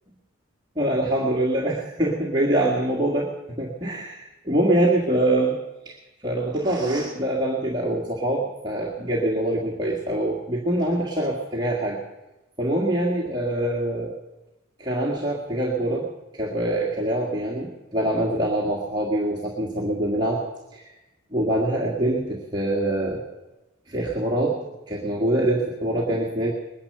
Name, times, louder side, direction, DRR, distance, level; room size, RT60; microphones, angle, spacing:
voice 1, 0.8-5.6 5.9-6.0 6.2-12.0 12.6-14.1 14.8-20.4 20.7-20.9 21.3-23.2 23.9-26.5, right 1 dB, 20° right, -4 dB, 1.8 m, -24 dB
20.5 x 10.5 x 6.7 m, 1.0 s
head